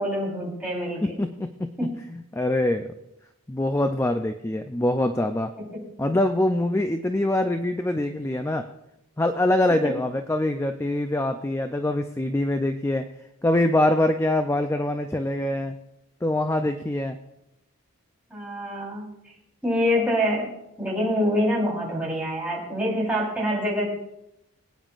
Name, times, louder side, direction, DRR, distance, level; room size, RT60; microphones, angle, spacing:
voice 1, 0.0-1.2 1.8-1.9 18.3-19.1 19.6-20.5 20.8-23.8, equal, 5° right, -6 dB, 3.8 m, -25 dB
voice 2, 1.0-2.9 3.5-5.5 6.0-8.6 9.2-13.1 13.4-15.8 16.2-17.2, left 1 dB, 10° left, 7 dB, 0.4 m, -24 dB
23.0 x 9.2 x 2.5 m, 0.85 s
head